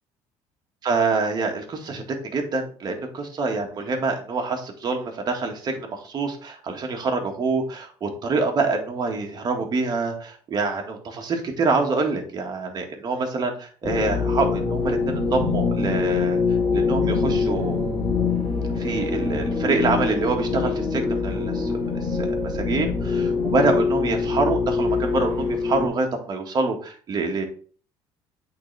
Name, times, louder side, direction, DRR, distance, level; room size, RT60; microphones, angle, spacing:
voice 1, 0.8-16.4 16.7-17.8 18.8-27.5, right 3 dB, 40° right, 2 dB, 1.7 m, -26 dB
sound 1, 13.8-25.9, left 4 dB, 20° left, 2.8 m, -24 dB
8.5 x 4.0 x 3.3 m, 0.43 s
cardioid pair, 105°, 11 cm